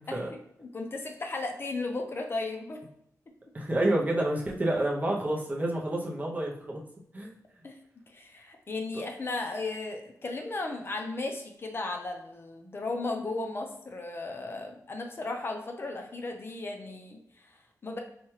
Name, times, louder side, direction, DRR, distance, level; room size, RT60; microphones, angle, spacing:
voice 1, 0.1-2.8 7.6-7.8 8.1-18.0, left 3 dB, 40° left, 3 dB, 0.5 m, -35 dB
voice 2, 3.5-6.8 7.1-7.3, right 1 dB, 25° right, -2 dB, 0.6 m, -29 dB
4.3 x 2.4 x 3.1 m, 0.74 s
wide cardioid pair, 135°, 6 cm